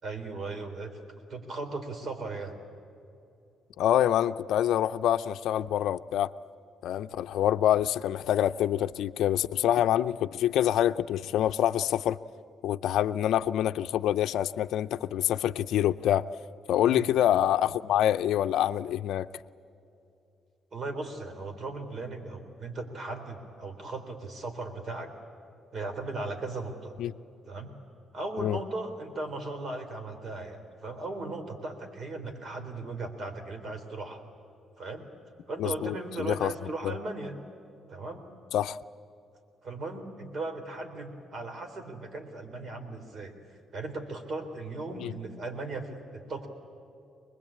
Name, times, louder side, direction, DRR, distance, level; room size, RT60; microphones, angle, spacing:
voice 1, 0.0-0.9 1.3-2.5 16.8-17.1 20.7-25.1 25.7-26.9 27.5-27.7 28.1-34.2 34.8-35.1 35.5-37.4 37.9-38.3 39.6-43.3 43.7-46.5, right 3 dB, 50° right, 6 dB, 3.8 m, -37 dB
voice 2, 3.8-6.3 6.8-12.2 12.6-16.3 16.7-19.3 27.0-27.1 28.4-28.6 35.6-36.5 36.8-36.9 38.5-38.8 45.0-45.1, left 11 dB, 80° left, 10 dB, 0.5 m, -26 dB
24.5 x 20.5 x 8.7 m, 2.8 s
cardioid pair, 90°, 0 cm